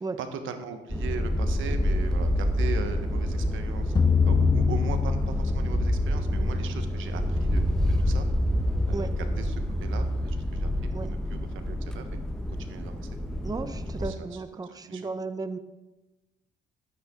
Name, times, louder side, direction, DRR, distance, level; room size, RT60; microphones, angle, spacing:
voice 1, 0.2-3.9 4.3-7.6 8.0-8.3 8.9-10.7 11.0-11.4 11.6-12.1 12.5-13.1 14.0-14.3 14.8-15.0, right 6 dB, 80° right, 8 dB, 1.2 m, -39 dB
sound 1, 0.9-14.1, equal, 5° left, 1.0 m, -27 dB
sound 2, 4.0-6.2, left 6 dB, 20° left, 0.4 m, -24 dB
voice 2, 13.4-15.6, right 3 dB, 20° right, 10 dB, 0.7 m, -34 dB
12.5 x 9.1 x 3.7 m, 1.1 s
cardioid pair, 90°, 20 cm